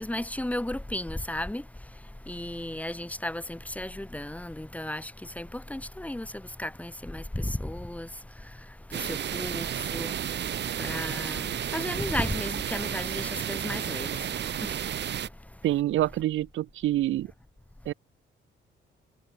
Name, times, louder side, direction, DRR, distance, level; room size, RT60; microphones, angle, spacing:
voice 1, 0.0-1.6 2.3-8.1 8.9-10.1 10.8-14.2 14.6-14.8, left 1 dB, 5° left, 1.7 m, -34 dB
sound 1, 8.9-15.3, right 10 dB, 60° right, 2.1 m, -32 dB
voice 2, 15.6-17.3 17.8-17.9, right 14 dB, 80° right, 1.4 m, -26 dB
cardioid pair, 90°, 20 cm